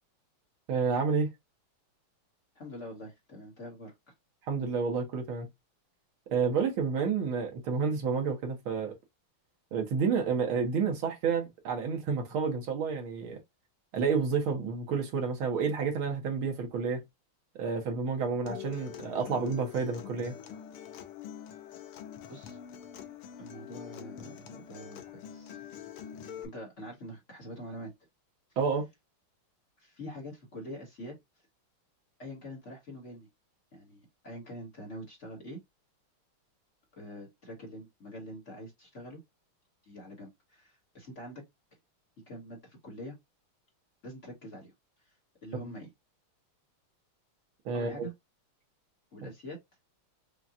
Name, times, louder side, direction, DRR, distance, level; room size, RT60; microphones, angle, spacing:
voice 1, 0.7-1.3 4.5-5.5 6.3-8.9 9.7-13.4 13.9-17.0 17.6-20.3 28.6-28.9 47.7-48.1, right 5 dB, 70° right, 1.9 m, -30 dB
voice 2, 2.5-3.9 22.3-22.6 23.4-25.6 26.4-27.9 29.8-31.1 32.2-33.3 33.7-35.6 37.0-39.2 39.8-41.5 42.3-43.2 44.0-44.7 45.0-45.1 45.4-45.9 47.7-48.1 49.1-49.6, equal, 40° left, 1.5 m, -45 dB
Acoustic guitar, 18.5-26.5, left 9 dB, 85° left, 1.7 m, -45 dB
5.7 x 2.3 x 2.5 m
omnidirectional pair, 2.4 m